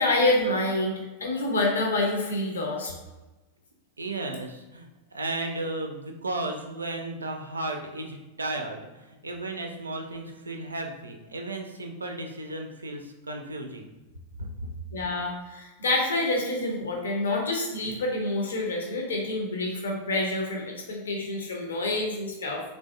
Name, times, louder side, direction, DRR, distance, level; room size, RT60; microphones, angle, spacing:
voice 1, 0.0-2.9 14.9-22.6, left 2 dB, 65° left, 0 dB, 0.6 m, -27 dB
voice 2, 4.0-13.9 14.4-14.5, right 2 dB, 75° right, 3 dB, 0.4 m, -34 dB
3.2 x 2.5 x 2.3 m, 1.1 s
figure-of-eight pair, 90°, 0 cm